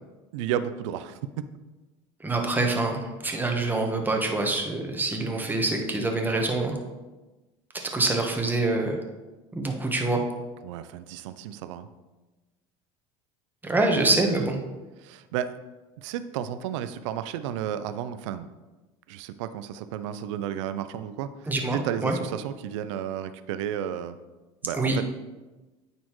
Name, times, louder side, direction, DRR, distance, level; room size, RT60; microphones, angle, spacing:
voice 1, 0.3-1.2 10.6-11.9 13.9-14.5 15.0-15.5 16.0-18.5 19.1-21.3 21.7-24.2 24.6-25.1, right 10 dB, 80° right, 12 dB, 0.4 m, -32 dB
voice 2, 2.2-6.7 7.7-9.0 9.5-10.2 13.6-14.6 21.5-22.2 24.7-25.0, right 2 dB, 10° right, 2 dB, 1.2 m, -25 dB
9.2 x 4.2 x 3.1 m, 1.2 s
supercardioid pair, 95°, 15 cm